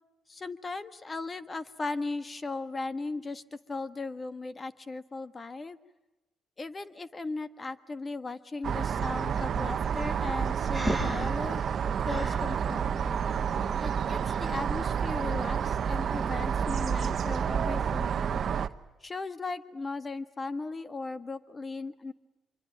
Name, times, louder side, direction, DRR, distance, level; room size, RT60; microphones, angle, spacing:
voice 1, 0.3-3.4 3.7-5.8 6.6-11.6 12.0-13.2 13.8-18.4 19.0-22.1, left 3 dB, 30° left, 12 dB, 1.5 m, -37 dB
sound 1, 8.6-18.7, right 7 dB, 55° right, 0.9 m, -29 dB
Breathing, 10.7-12.5, equal, 5° left, 6.0 m, -33 dB
25.5 x 24.5 x 8.9 m, 1.0 s
cardioid pair, 90°, 0 cm